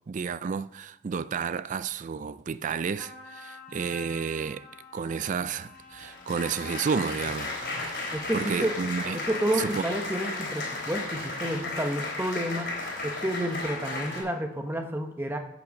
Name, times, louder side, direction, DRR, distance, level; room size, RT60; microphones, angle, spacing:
voice 1, 0.1-4.7 4.9-7.6 7.8-9.2 9.6-9.8, right 6 dB, 40° right, 0.3 m, -31 dB
Trumpet, 3.0-9.7, left 3 dB, 5° left, 3.2 m, -48 dB
Applause, 5.7-14.2, left 2 dB, 50° left, 3.7 m, -34 dB
voice 2, 8.1-8.8 9.1-12.8 13.0-15.4, right 1 dB, 10° right, 0.9 m, -30 dB
13.5 x 6.2 x 5.3 m
head